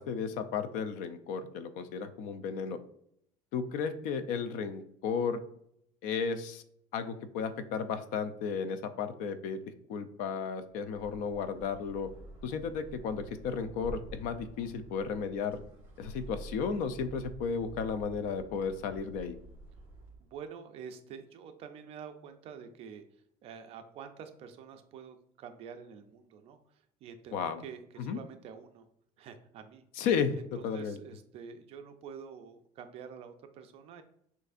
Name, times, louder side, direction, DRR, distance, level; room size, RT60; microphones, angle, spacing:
voice 1, 0.0-2.8 3.5-5.4 6.0-6.6 6.9-9.6 9.9-12.1 12.4-15.6 16.0-19.4 27.3-27.6 28.0-28.2 30.0-31.0, left 6 dB, 75° left, 10 dB, 0.5 m, -34 dB
sound 1, 10.8-20.3, right 2 dB, 15° right, 1.6 m, -49 dB
voice 2, 20.2-27.4 27.6-28.9 29.2-29.8 30.3-34.0, right 7 dB, 45° right, 7 dB, 0.5 m, -47 dB
6.5 x 2.6 x 2.5 m, 0.70 s
cardioid pair, 175°, 14 cm